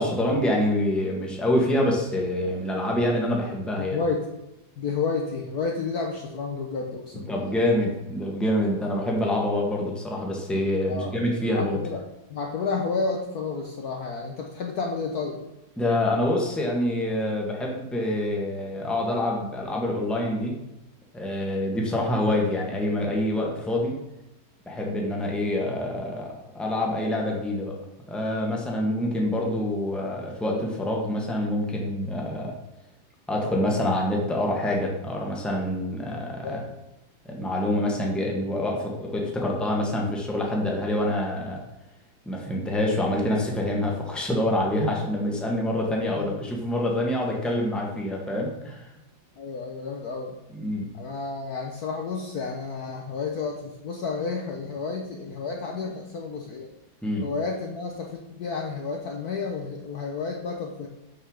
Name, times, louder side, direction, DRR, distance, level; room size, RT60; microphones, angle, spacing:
voice 1, 0.0-4.0 7.3-11.8 15.8-20.5 21.1-24.0 24.6-27.7 28.1-32.6 33.3-36.6 37.2-41.6 42.2-48.8 50.5-50.9 57.0-57.3, left 1 dB, ahead, -1 dB, 1.3 m, -26 dB
voice 2, 3.8-4.3 4.8-7.5 10.9-11.2 11.5-12.0 12.3-15.4 36.4-36.8 46.2-46.4 49.4-50.4 50.9-56.7 57.2-60.9, left 4 dB, 60° left, 1 dB, 1.2 m, -31 dB
6.7 x 5.6 x 6.4 m, 0.94 s
omnidirectional pair, 2.2 m